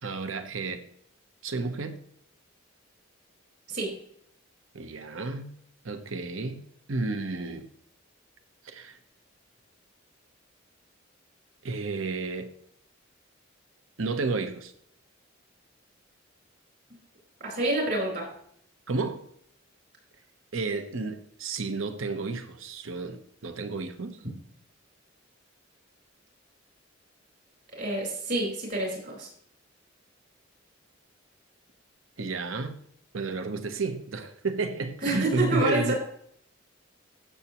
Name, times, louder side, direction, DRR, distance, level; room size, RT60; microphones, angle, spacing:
voice 1, 0.0-0.9 1.4-2.0 4.7-5.5 5.8-6.6 6.9-7.7 8.6-9.0 11.6-12.5 14.0-14.7 18.9-19.2 20.5-24.2 32.2-32.8 33.1-35.9, right 3 dB, 75° right, 0.9 m, -31 dB
voice 2, 17.4-18.3 27.8-29.3 35.0-36.0, right 2 dB, 50° right, 4.7 m, -28 dB
15.5 x 6.9 x 3.0 m
head